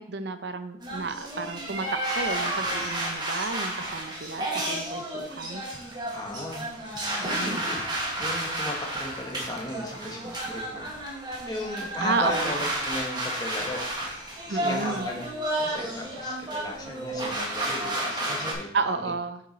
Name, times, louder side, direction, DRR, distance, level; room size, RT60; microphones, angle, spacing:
voice 1, 0.0-5.6 7.2-7.6 12.0-12.6 14.5-15.1 18.7-19.4, right 4 dB, 55° right, 10 dB, 0.6 m, -32 dB
sound 1, 0.8-18.5, right 1 dB, 20° right, 1.5 m, -31 dB
voice 2, 6.1-6.7 7.2-7.8 8.2-10.9 11.4-13.8 14.5-15.3 15.6-19.1, left 1 dB, 20° left, 0 dB, 1.5 m, -36 dB
7.0 x 6.6 x 4.2 m, 0.73 s
head